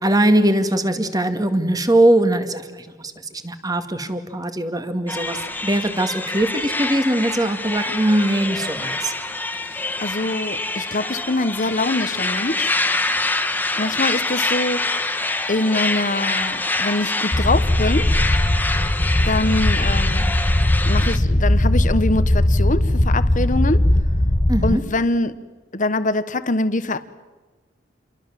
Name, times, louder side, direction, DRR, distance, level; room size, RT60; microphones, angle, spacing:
voice 1, 0.0-9.1 24.5-24.8, right 1 dB, 20° right, 8 dB, 2.1 m, -21 dB
sound 1, 5.1-21.2, left 2 dB, 10° left, 1.4 m, -25 dB
voice 2, 10.0-12.8 13.8-15.0 15.5-18.1 19.2-20.3 20.8-23.9 24.6-25.4 25.7-27.0, left 2 dB, 40° left, 12 dB, 1.3 m, -23 dB
sound 2, 17.3-24.8, left 1 dB, 25° left, 0.9 m, -19 dB
29.0 x 24.0 x 7.6 m, 1.3 s
head